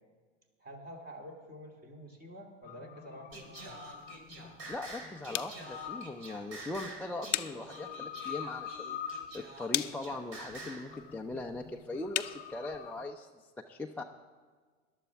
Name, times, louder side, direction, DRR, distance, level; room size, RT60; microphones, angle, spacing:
voice 1, 0.6-3.8, equal, 25° right, 2 dB, 2.7 m, -48 dB
sound 1, 2.6-13.1, left 8 dB, 25° left, 1.1 m, -46 dB
sound 2, 3.3-13.1, left 14 dB, 75° left, 0.6 m, -42 dB
Singing, 3.3-10.9, right 2 dB, 40° right, 3.8 m, -47 dB
voice 2, 4.7-14.0, left 2 dB, 5° left, 0 dB, 0.6 m, -40 dB
21.0 x 11.5 x 3.5 m, 1.5 s
hypercardioid pair, 85°, 37 cm